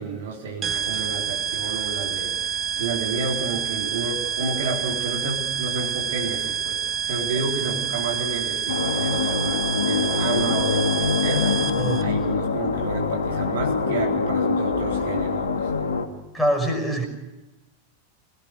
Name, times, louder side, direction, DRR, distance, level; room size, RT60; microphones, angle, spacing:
voice 1, 0.0-2.3 2.8-6.8 7.0-11.6 12.0-15.7, right 4 dB, 60° right, 0 dB, 3.8 m, -30 dB
sound 1, 0.6-12.0, right 8 dB, 25° right, 1.0 m, -28 dB
sound 2, 8.7-16.1, left 4 dB, 65° left, 2.4 m, -24 dB
voice 2, 11.8-12.1 16.3-17.0, right 1 dB, ahead, 2 dB, 5.8 m, -24 dB
25.5 x 17.5 x 6.5 m, 1.1 s
figure-of-eight pair, 90°, 0 cm